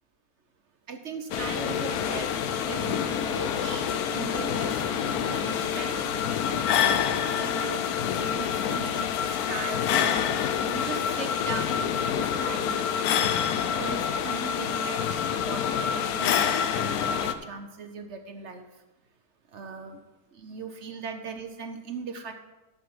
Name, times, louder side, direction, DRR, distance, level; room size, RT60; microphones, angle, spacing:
voice 1, 0.9-2.3 2.7-6.1 7.1-13.3 13.7-18.7 19.5-20.0 20.3-22.3, right 5 dB, 55° right, 7 dB, 1.0 m, -39 dB
sound 1, 1.3-17.3, left 8 dB, 80° left, 1.1 m, -27 dB
sound 2, 1.3-7.0, right 3 dB, 70° right, 1.5 m, -43 dB
12.5 x 5.4 x 6.0 m, 1.1 s
omnidirectional pair, 1.6 m